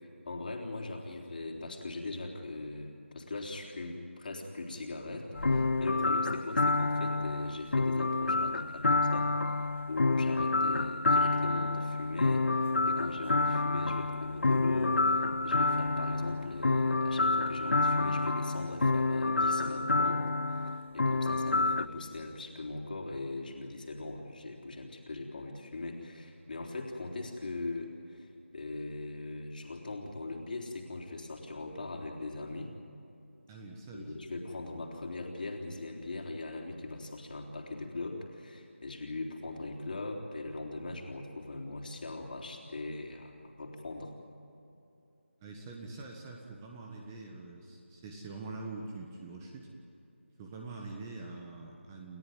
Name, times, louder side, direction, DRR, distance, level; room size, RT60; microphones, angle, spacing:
voice 1, 0.3-32.7 33.9-44.1, left 2 dB, 45° left, 1 dB, 3.6 m, -40 dB
sound 1, 5.3-21.9, left 3 dB, 65° left, 0.5 m, -28 dB
voice 2, 33.5-34.1 45.4-49.7 50.4-52.2, right 3 dB, 15° right, 1 dB, 1.5 m, -44 dB
29.5 x 14.0 x 9.5 m, 2.8 s
figure-of-eight pair, 165°, 7 cm